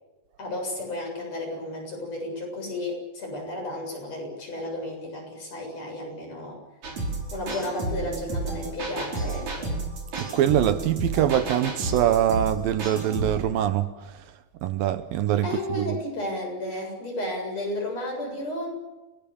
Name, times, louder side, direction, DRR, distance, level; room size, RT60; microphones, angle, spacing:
voice 1, 0.4-6.6 7.3-9.7 15.4-18.7, left 1 dB, 45° left, 8.4 m, -33 dB
sound 1, 6.8-13.4, right 2 dB, 50° right, 6.1 m, -31 dB
voice 2, 10.2-14.3 14.6-16.0, right 11 dB, 75° right, 2.5 m, -24 dB
29.5 x 19.5 x 7.1 m
omnidirectional pair, 4.3 m